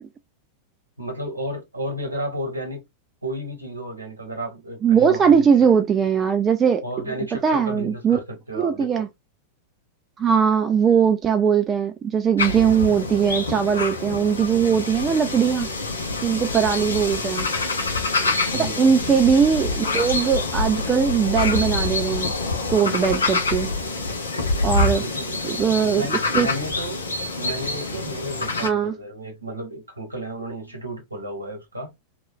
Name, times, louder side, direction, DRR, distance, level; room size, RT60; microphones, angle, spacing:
voice 1, 1.0-2.8 3.2-5.5 6.8-9.0 18.5-18.9 25.0-27.0 27.4-31.9, right 1 dB, 80° right, 1.1 m, -32 dB
voice 2, 4.8-6.8 7.4-8.2 8.6-9.1 10.2-15.7 16.2-17.5 18.8-22.3 22.7-23.7 24.6-25.0 25.4-26.0 26.3-26.5 28.6-28.9, right 7 dB, 25° right, 0.3 m, -20 dB
sound 1, 12.4-28.7, left 3 dB, 75° left, 0.7 m, -26 dB
3.0 x 2.3 x 2.6 m
figure-of-eight pair, 90°, 0 cm